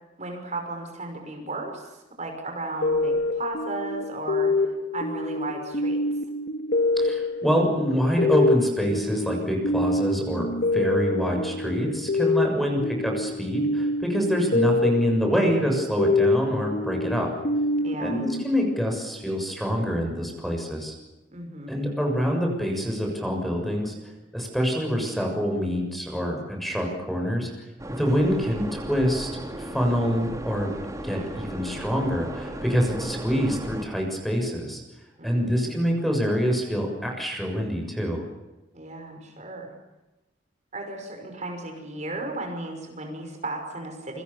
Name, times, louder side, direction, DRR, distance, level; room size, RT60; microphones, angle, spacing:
voice 1, 0.2-4.5 4.9-6.0 12.4-12.8 17.8-18.2 21.3-21.8 35.2-35.7 38.7-39.7 40.7-44.2, right 2 dB, 40° right, 4 dB, 5.7 m, -35 dB
sound 1, 2.8-19.2, left 2 dB, 55° left, 1.8 m, -26 dB
voice 2, 7.0-17.3 18.0-20.9 21.7-23.9 24.3-27.5 28.0-29.3 29.6-30.7 31.0-34.8 35.2-38.2, equal, ahead, 2 dB, 6.8 m, -26 dB
sound 2, 27.8-33.9, right 1 dB, 20° right, 3.4 m, -36 dB
28.5 x 26.0 x 7.1 m, 1.0 s
head